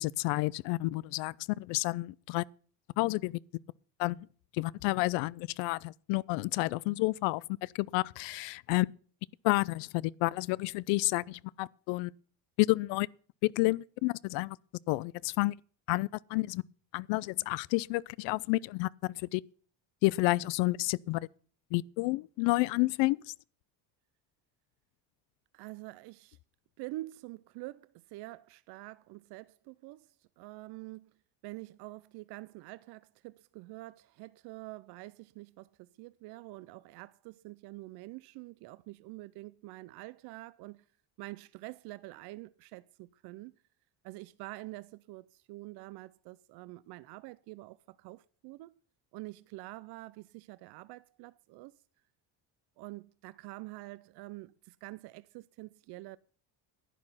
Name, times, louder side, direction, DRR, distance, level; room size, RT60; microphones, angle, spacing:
voice 1, 0.0-2.4 3.0-3.4 4.0-4.3 4.5-8.9 9.4-12.1 12.6-13.1 13.4-14.6 14.9-15.5 15.9-16.6 16.9-19.4 20.0-21.2 21.7-23.3, left 22 dB, 85° left, 0.5 m, -30 dB
voice 2, 25.5-26.4 26.8-31.2 31.4-40.9 41.2-43.6 44.0-48.8 49.1-51.7 52.8-56.2, right 19 dB, 65° right, 0.5 m, -46 dB
11.0 x 9.8 x 5.6 m
cardioid pair, 130°, 42 cm